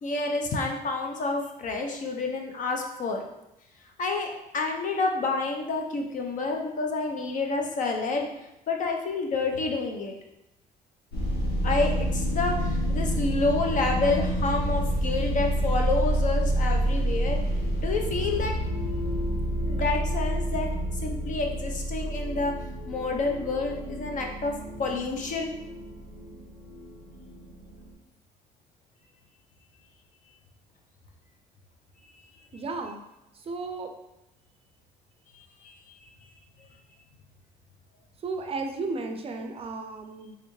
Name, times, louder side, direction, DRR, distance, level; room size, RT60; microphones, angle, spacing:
voice 1, 0.0-3.2 4.0-8.3 8.7-10.1 11.6-17.4 17.8-18.5 19.7-20.7 21.0-22.5 22.9-24.5 24.8-25.5 35.6-35.8, left 3 dB, 50° left, 2 dB, 0.7 m, -29 dB
sound 1, 11.1-27.9, right 1 dB, 80° left, 1.2 m, -28 dB
voice 2, 32.5-33.0 33.3-33.9 38.2-40.4, right 3 dB, 35° right, 5 dB, 0.4 m, -34 dB
3.5 x 3.3 x 3.1 m, 0.90 s
cardioid pair, 110°, 17 cm